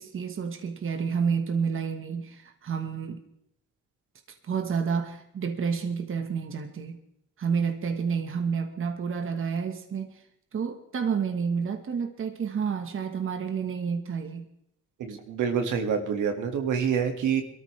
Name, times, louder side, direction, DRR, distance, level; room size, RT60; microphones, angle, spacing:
voice 1, 0.0-3.2 4.4-7.0 7.4-10.2 10.5-14.4, right 6 dB, 45° right, 5 dB, 1.4 m, -29 dB
voice 2, 15.0-17.4, right 7 dB, 80° right, 4 dB, 2.1 m, -27 dB
22.0 x 13.5 x 3.3 m, 0.74 s
cardioid pair, 90°, 30 cm